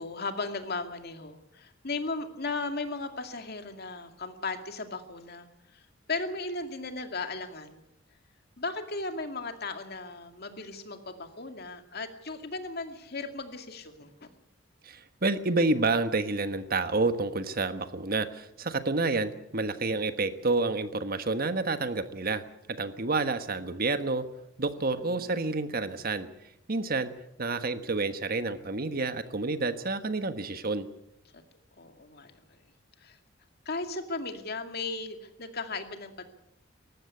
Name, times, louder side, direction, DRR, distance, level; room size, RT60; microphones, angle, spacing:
voice 1, 0.0-5.5 5.7-5.8 6.1-7.8 8.6-14.3 25.0-25.3 31.3-31.4 31.8-32.4 33.0-33.2 33.7-36.2, left 3 dB, 55° left, 7 dB, 2.3 m, -36 dB
voice 2, 14.8-22.4 22.7-24.3 24.6-26.3 26.7-27.1 27.4-30.9, right 3 dB, 50° right, 10 dB, 1.3 m, -29 dB
19.5 x 15.0 x 9.5 m, 0.83 s
head